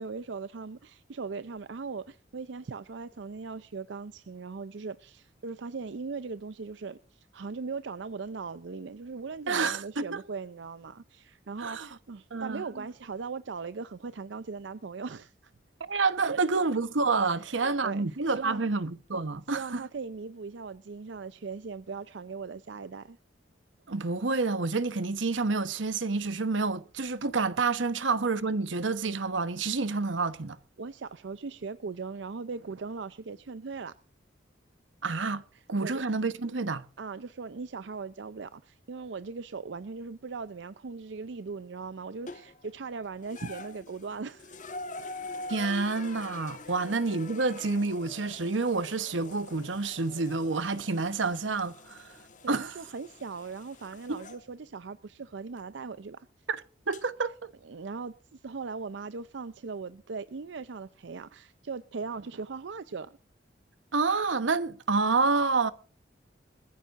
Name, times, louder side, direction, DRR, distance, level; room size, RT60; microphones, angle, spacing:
voice 1, 0.0-15.5 16.2-16.4 17.4-18.6 19.5-23.2 30.8-33.9 35.5-36.0 37.0-44.6 46.6-46.9 52.2-56.3 57.6-63.2, right 4 dB, 70° right, 0.5 m, -39 dB
voice 2, 9.5-10.2 11.6-11.9 12.3-12.8 15.9-19.8 23.9-30.6 35.0-35.4 35.7-36.9 45.5-52.1 52.5-52.8 54.1-54.2 56.5-56.6 56.9-57.5 63.9-65.7, right 4 dB, 90° right, 1.1 m, -28 dB
sound 1, 42.3-42.7 43.2-54.4 55.6-55.7 56.9-57.0, left 2 dB, 40° left, 1.5 m, -45 dB
21.5 x 15.0 x 2.5 m
head